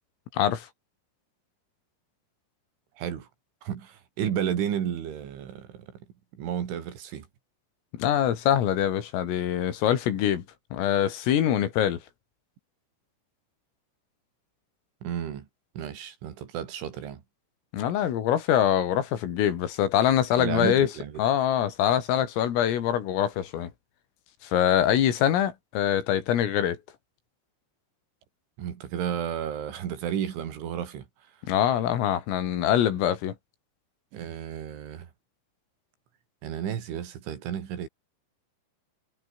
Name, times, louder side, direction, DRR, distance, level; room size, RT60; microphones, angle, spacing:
voice 1, 0.3-0.7 7.9-10.4 10.7-12.0 17.7-20.9 21.2-23.7 24.4-26.8 31.5-33.4, left 10 dB, 80° left, 5.3 m, -24 dB
voice 2, 3.0-3.3 3.7-5.9 6.4-7.3 15.0-15.5 15.8-17.2 20.4-21.1 28.6-31.1 34.1-35.1 36.4-37.9, right 9 dB, 65° right, 5.2 m, -32 dB
omnidirectional pair, 6.0 m